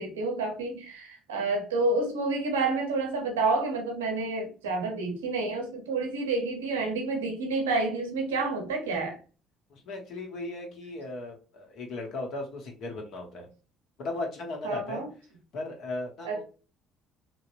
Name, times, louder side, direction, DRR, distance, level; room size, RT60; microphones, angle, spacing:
voice 1, 0.0-9.2 14.6-15.1 16.2-16.4, right 3 dB, 90° right, 0.6 m, -29 dB
voice 2, 9.7-13.5 14.0-15.0 15.5-16.4, left 2 dB, 65° left, 0.9 m, -36 dB
2.8 x 2.1 x 2.4 m
hypercardioid pair, 60°, 0 cm